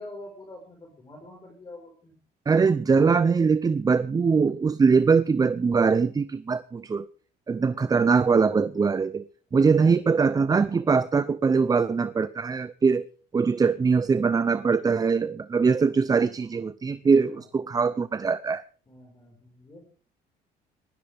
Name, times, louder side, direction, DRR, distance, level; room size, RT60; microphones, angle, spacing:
voice 1, 0.0-2.1 7.7-7.9 9.5-9.9 15.5-16.2 17.3-17.5 18.9-19.9, left 2 dB, 25° left, 5.0 m, -46 dB
voice 2, 2.5-7.1 7.5-9.2 9.5-13.1 13.3-18.6, right 5 dB, 20° right, 0.6 m, -22 dB
19.5 x 14.5 x 3.5 m
cardioid pair, 110°, 17 cm